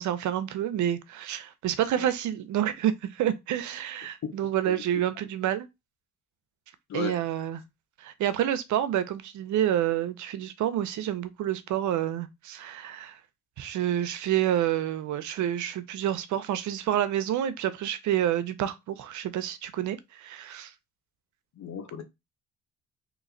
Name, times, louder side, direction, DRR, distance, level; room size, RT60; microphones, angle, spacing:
voice 1, 0.0-5.7 6.9-7.6 8.0-13.2 13.6-20.7, right 11 dB, 75° right, 0.6 m, -28 dB
voice 2, 6.9-7.2 21.6-22.0, left 7 dB, 65° left, 1.1 m, -35 dB
3.1 x 2.9 x 3.8 m
cardioid pair, 90°, 30 cm